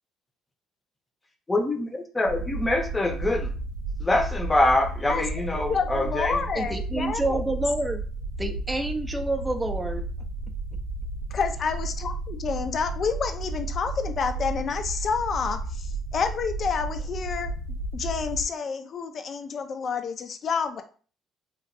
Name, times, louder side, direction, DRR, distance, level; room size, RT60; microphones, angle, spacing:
voice 1, 1.5-3.5 4.0-6.4, left 2 dB, 20° left, 4 dB, 0.7 m, -25 dB
sound 1, 2.3-18.5, right 2 dB, 90° right, 0.3 m, -33 dB
voice 2, 5.5-7.4 11.3-17.5 17.9-20.8, left 5 dB, 50° left, 8 dB, 0.4 m, -29 dB
voice 3, 6.6-8.0 8.4-10.0, right 2 dB, 10° right, 3 dB, 0.4 m, -28 dB
2.9 x 2.4 x 2.5 m, 0.41 s
supercardioid pair, 65°, 0 cm